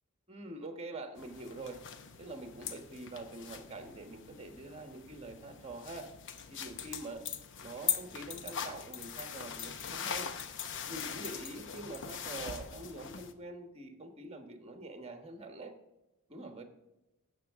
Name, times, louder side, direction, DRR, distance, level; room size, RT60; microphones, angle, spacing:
voice 1, 0.3-1.8 2.2-6.1 6.5-7.2 7.6-10.3 10.9-15.7 16.3-16.6, right 2 dB, 25° right, 6 dB, 1.2 m, -45 dB
sound 1, 1.2-13.3, left 7 dB, 55° left, 0.8 m, -41 dB
16.0 x 6.4 x 3.6 m, 0.98 s
head